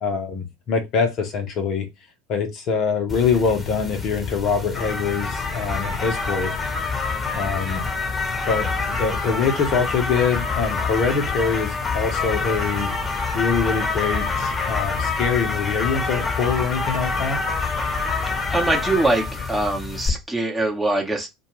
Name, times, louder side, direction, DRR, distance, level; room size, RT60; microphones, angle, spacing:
voice 1, 0.0-1.9 2.3-6.5 7.3-7.8 8.5-13.0 13.3-17.4, left 5 dB, 50° left, 0.7 m, -24 dB
sound 1, 3.1-20.1, left 4 dB, 15° left, 1.0 m, -26 dB
voice 2, 18.5-21.3, right 2 dB, 10° right, 0.9 m, -23 dB
2.3 x 2.3 x 3.0 m
figure-of-eight pair, 70°, 0 cm